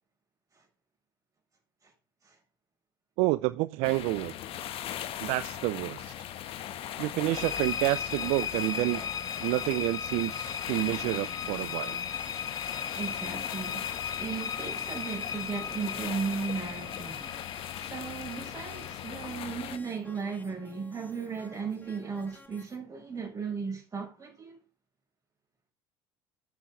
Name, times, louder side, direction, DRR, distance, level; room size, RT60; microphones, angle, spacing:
voice 1, 3.2-4.3 5.2-6.1 7.0-9.0 9.4-12.0, right 20 dB, 70° right, 0.4 m, -29 dB
sound 1, 3.8-19.8, left 11 dB, 55° left, 1.3 m, -40 dB
sound 2, 6.1-22.8, left 2 dB, 15° left, 3.6 m, -56 dB
sound 3, 7.3-19.4, left 7 dB, 30° left, 1.2 m, -37 dB
voice 2, 12.9-17.3 17.8-24.6, right 5 dB, 30° right, 6.2 m, -36 dB
9.2 x 6.9 x 5.5 m
hypercardioid pair, 70°, 11 cm